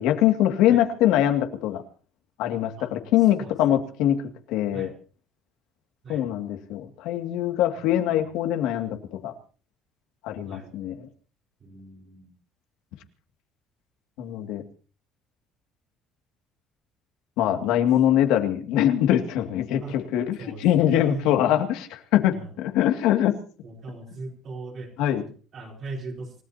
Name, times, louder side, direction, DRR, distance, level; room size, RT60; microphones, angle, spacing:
voice 1, 0.0-1.8 2.4-4.2 4.5-4.9 6.1-9.3 10.2-11.1 14.2-14.6 17.4-23.4 24.1-24.2 25.0-25.2, left 11 dB, 90° left, 5 dB, 2.3 m, -23 dB
voice 2, 7.7-8.3 10.4-10.7 11.6-12.3 19.8-20.0 20.4-21.6 22.3-22.6 23.6-26.3, right 3 dB, 35° right, 0 dB, 4.8 m, -40 dB
29.0 x 17.5 x 2.9 m, 0.38 s
cardioid pair, 180°, 0 cm